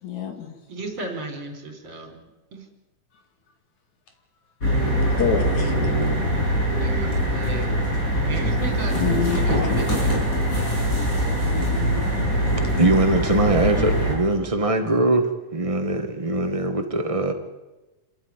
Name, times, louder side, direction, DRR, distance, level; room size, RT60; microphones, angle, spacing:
voice 1, 0.0-0.5 5.2-5.8 8.9-9.7 12.5-12.7, left 6 dB, 70° left, 3.9 m, -26 dB
voice 2, 0.7-2.2 2.5-2.6 6.7-7.8 8.2-10.2, right 2 dB, 45° right, 4.6 m, -34 dB
sound 1, 4.6-14.1, equal, 25° left, 7.2 m, -22 dB
voice 3, 12.8-17.3, right 2 dB, 65° right, 0.3 m, -22 dB
27.0 x 13.5 x 9.7 m
omnidirectional pair, 3.4 m